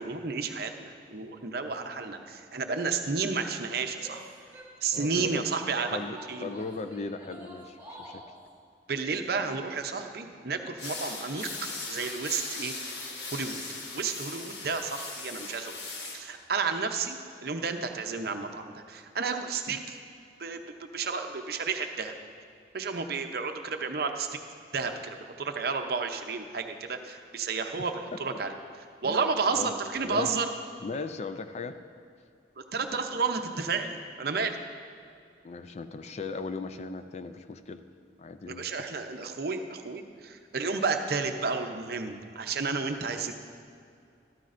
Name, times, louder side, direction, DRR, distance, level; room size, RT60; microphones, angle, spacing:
voice 1, 0.0-4.2 4.8-5.9 6.3-6.5 8.9-11.5 11.9-12.7 13.3-13.6 13.9-17.2 17.4-20.0 20.4-20.6 20.9-22.1 22.7-24.4 24.7-28.5 29.0-30.5 32.6-34.6 38.5-43.3, right 4 dB, 55° right, 6 dB, 0.6 m, -31 dB
Female speech woman speaking / Yell, 3.9-5.2 5.7-8.3, equal, 15° right, 2.9 m, -48 dB
voice 2, 4.9-5.5 5.9-6.2 6.4-8.2 19.7-19.8 27.8-28.2 29.0-29.2 29.5-29.7 30.0-30.3 30.8-31.8 35.4-37.8 38.2-38.7, left 4 dB, 35° left, 10 dB, 0.3 m, -37 dB
sound 1, 10.8-16.2, left 3 dB, 60° left, 1.2 m, -39 dB
13.5 x 12.5 x 2.5 m, 2.4 s
head